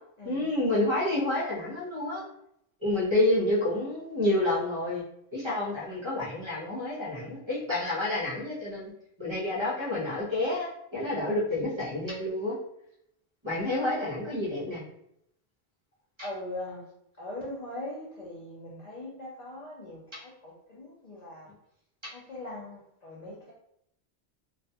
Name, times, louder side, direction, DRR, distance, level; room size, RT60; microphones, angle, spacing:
voice 1, 0.2-2.2 2.8-5.0 5.3-8.9 9.2-12.6 13.4-14.8 16.2-16.3, left 1 dB, 30° right, -7 dB, 0.7 m, -29 dB
voice 2, 16.2-16.8 17.2-21.5 22.1-23.5, left 1 dB, 50° left, -5 dB, 0.5 m, -40 dB
2.3 x 2.2 x 2.7 m, 0.76 s
omnidirectional pair, 1.1 m